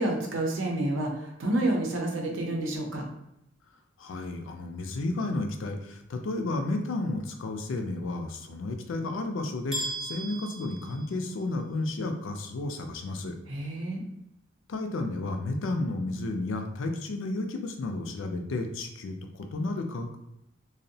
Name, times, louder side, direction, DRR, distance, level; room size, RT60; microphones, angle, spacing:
voice 1, 0.0-3.0 13.5-14.0, right 1 dB, 80° right, 0 dB, 0.6 m, -29 dB
voice 2, 4.0-13.3 14.7-20.2, left 2 dB, 80° left, 5 dB, 0.4 m, -32 dB
sound 1, 9.7-11.7, right 1 dB, ahead, 0.5 m, -37 dB
2.6 x 2.0 x 2.6 m, 0.84 s
head